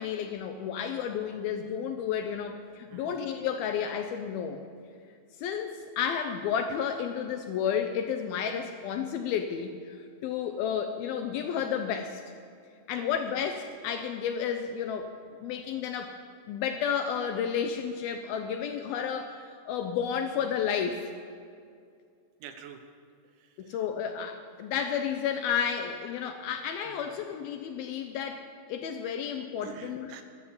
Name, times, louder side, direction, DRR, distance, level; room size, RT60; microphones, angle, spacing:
voice 1, 0.0-4.6 5.4-12.2 12.9-15.1 15.4-16.2 16.5-21.1 23.7-30.1, left 7 dB, 75° left, 6 dB, 2.3 m, -32 dB
voice 2, 2.9-3.2 12.9-13.1 22.4-22.8 23.2-23.9 26.2-26.3 26.9-27.1 29.6-30.2, right 8 dB, 90° right, 7 dB, 3.4 m, -48 dB
14.5 x 11.0 x 7.2 m, 2.3 s
omnidirectional pair, 5.0 m